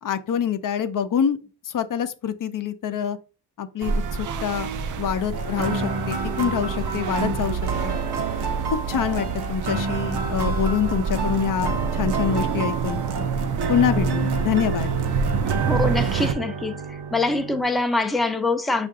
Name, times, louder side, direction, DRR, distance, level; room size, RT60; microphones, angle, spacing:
voice 1, 0.0-1.4 1.6-3.2 3.6-4.7 5.0-8.0 8.7-13.0 13.7-14.9, left 8 dB, 55° left, 0.6 m, -25 dB
sound 1, 3.8-16.3, right 5 dB, 50° right, 0.5 m, -27 dB
sound 2, 5.3-17.6, right 4 dB, 75° right, 0.9 m, -29 dB
voice 2, 15.7-16.8 17.1-18.9, left 2 dB, ahead, 0.5 m, -24 dB
5.6 x 2.5 x 3.6 m
cardioid pair, 85°, 40 cm